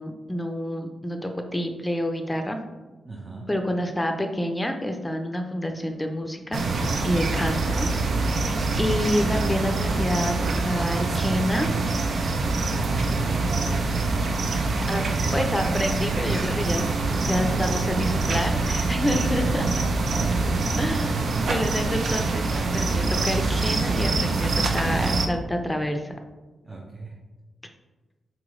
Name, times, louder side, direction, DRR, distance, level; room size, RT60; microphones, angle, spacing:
voice 1, 0.0-2.6 3.5-6.6 7.0-7.9 8.3-11.7 14.9-15.0 15.3-19.7 20.8-26.1, left 1 dB, 15° left, 5 dB, 0.5 m, -28 dB
voice 2, 3.0-3.5 7.1-7.4 8.5-8.8 12.5-14.0 17.4-17.9 19.0-19.8 20.1-20.8 26.6-27.2, right 2 dB, 35° right, -3 dB, 0.9 m, -38 dB
sound 1, 6.5-25.3, right 3 dB, 65° right, 0.5 m, -25 dB
4.0 x 3.0 x 3.7 m, 1.2 s
supercardioid pair, 45°, 0 cm